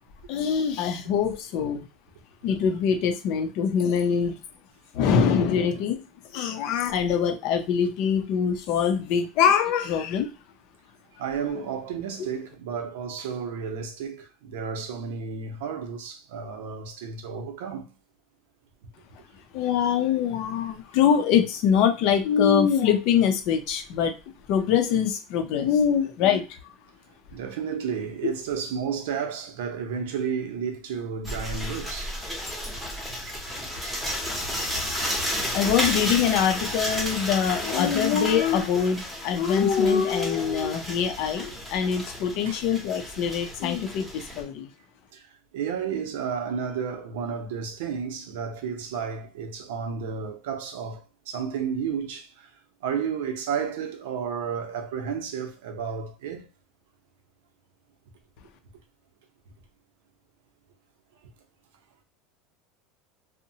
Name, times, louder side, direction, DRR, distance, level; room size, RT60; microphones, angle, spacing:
voice 1, 0.3-1.9 2.4-4.4 4.9-6.0 6.3-10.3 11.5-11.6 19.5-24.1 24.5-26.4 35.5-44.7, left 7 dB, 55° left, 0.5 m, -23 dB
voice 2, 11.2-17.9 27.3-32.2 42.4-42.6 45.1-45.3 45.5-52.5 52.8-56.5, right 6 dB, 85° right, 0.7 m, -32 dB
sound 1, 31.2-44.4, equal, ahead, 0.8 m, -32 dB
2.7 x 2.1 x 2.7 m
supercardioid pair, 155°, 0 cm